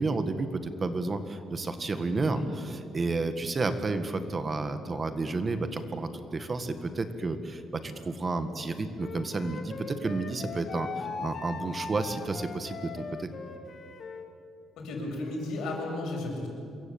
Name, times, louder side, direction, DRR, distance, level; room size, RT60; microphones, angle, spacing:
voice 1, 0.0-13.3, right 3 dB, 30° right, 9 dB, 1.8 m, -31 dB
Wind instrument woodwind instrument, 9.0-14.3, left 4 dB, 40° left, 2.3 m, -40 dB
voice 2, 14.8-16.5, left 2 dB, 75° left, 1 dB, 7.6 m, -34 dB
27.0 x 22.5 x 8.8 m, 2.5 s
cardioid pair, 130°, 0 cm